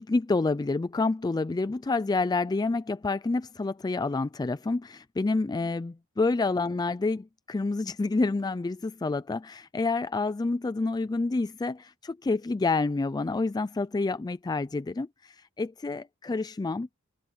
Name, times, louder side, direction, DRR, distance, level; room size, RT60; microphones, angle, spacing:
voice 1, 0.0-16.9, left 3 dB, 20° left, 0.3 m, -28 dB
head